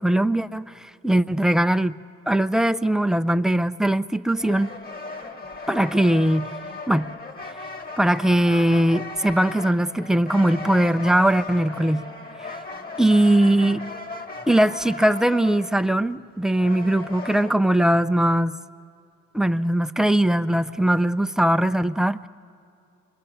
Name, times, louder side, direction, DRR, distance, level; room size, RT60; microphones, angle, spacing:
voice 1, 0.0-2.0 2.3-4.7 5.7-6.5 6.9-7.1 8.0-12.0 13.0-13.9 14.5-18.6 19.3-22.3, right 1 dB, ahead, 0.5 m, -20 dB
sound 1, 4.4-17.5, left 3 dB, 30° left, 1.8 m, -37 dB
27.5 x 22.0 x 6.8 m
cardioid pair, 90°, 30 cm